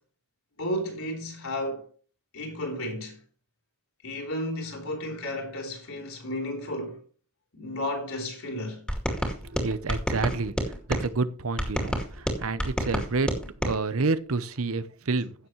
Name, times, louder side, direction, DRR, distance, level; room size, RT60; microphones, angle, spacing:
voice 1, 0.6-1.9 2.3-3.2 4.0-7.0 7.5-8.8, left 1 dB, 65° left, 3.8 m, -33 dB
sound 1, 8.9-11.1 11.6-13.8, equal, 5° left, 2.2 m, -29 dB
voice 2, 9.4-13.3 13.6-15.3, right 3 dB, 70° right, 0.8 m, -29 dB
16.0 x 7.1 x 3.2 m
head